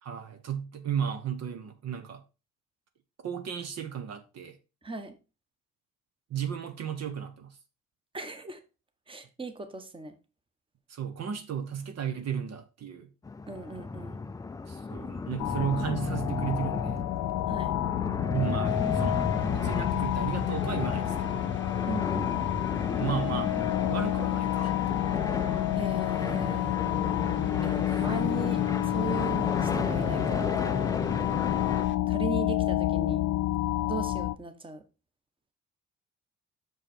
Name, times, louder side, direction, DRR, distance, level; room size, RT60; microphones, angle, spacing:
voice 1, 0.0-2.2 3.2-4.6 6.3-7.6 10.9-13.1 14.7-17.0 18.3-19.3 19.5-21.5 23.0-23.5 23.9-25.0, right 8 dB, 60° right, 0.9 m, -34 dB
voice 2, 4.8-5.2 8.1-8.6 9.1-10.2 13.5-14.2 17.5-17.8 21.9-22.4 25.7-26.8 27.6-30.5 32.1-33.2 33.8-34.8, right 3 dB, 15° right, 1.1 m, -38 dB
sound 1, 13.2-31.9, left 3 dB, 10° left, 0.3 m, -33 dB
sound 2, 15.4-34.4, left 15 dB, 75° left, 0.5 m, -29 dB
sound 3, 18.6-32.0, left 7 dB, 40° left, 0.7 m, -46 dB
6.3 x 5.0 x 4.2 m
cardioid pair, 90°, 30 cm